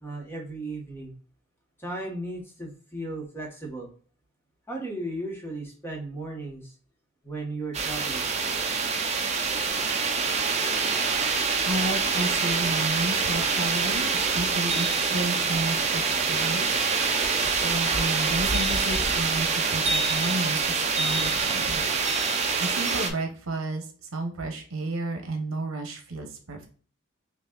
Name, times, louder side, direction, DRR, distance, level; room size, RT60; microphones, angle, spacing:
voice 1, 0.0-1.1 1.8-3.9 4.7-6.7 7.2-8.3, right 2 dB, 10° left, -1 dB, 1.3 m, -35 dB
sound 1, 7.7-23.1, right 4 dB, 30° right, 0.6 m, -25 dB
voice 2, 11.6-16.7 17.6-21.8 22.6-26.7, right 2 dB, 75° right, 4 dB, 1.0 m, -32 dB
6.0 x 2.6 x 2.4 m, 0.41 s
head